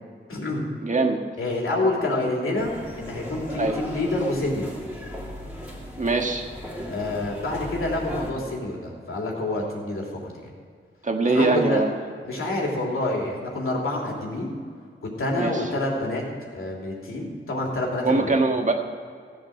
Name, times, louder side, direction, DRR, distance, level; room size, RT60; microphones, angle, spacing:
voice 1, 0.3-0.6 1.4-4.7 6.9-10.5 11.2-11.8 12.2-14.5 15.2-16.2 16.5-18.4, left 2 dB, 80° left, -2 dB, 3.1 m, -27 dB
voice 2, 0.8-1.2 3.6-3.8 6.0-6.5 11.0-11.9 15.3-15.6 18.0-18.7, right 3 dB, 35° right, 3 dB, 1.5 m, -22 dB
sound 1, 2.6-8.3, equal, 5° right, 2.6 m, -37 dB
16.0 x 7.9 x 6.6 m, 2.1 s
wide cardioid pair, 100°, 21 cm